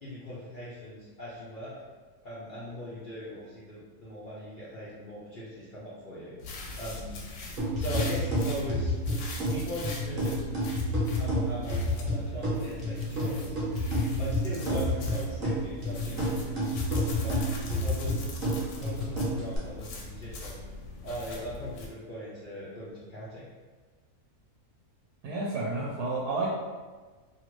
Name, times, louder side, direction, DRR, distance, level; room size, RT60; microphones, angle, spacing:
voice 1, 0.0-1.7 2.2-6.3 6.8-7.2 7.8-8.9 9.5-10.4 11.1-13.5 14.2-17.4 17.7-18.2 18.8-20.6 21.0-23.4, equal, 55° left, -10 dB, 0.6 m, -39 dB
sound 1, 6.4-21.9, left 2 dB, 80° left, 1.1 m, -41 dB
sound 2, 7.6-19.6, equal, 40° right, 1.0 m, -30 dB
voice 2, 25.2-26.5, right 3 dB, 80° right, -5 dB, 1.1 m, -30 dB
2.8 x 2.5 x 3.0 m, 1.3 s
omnidirectional pair, 1.6 m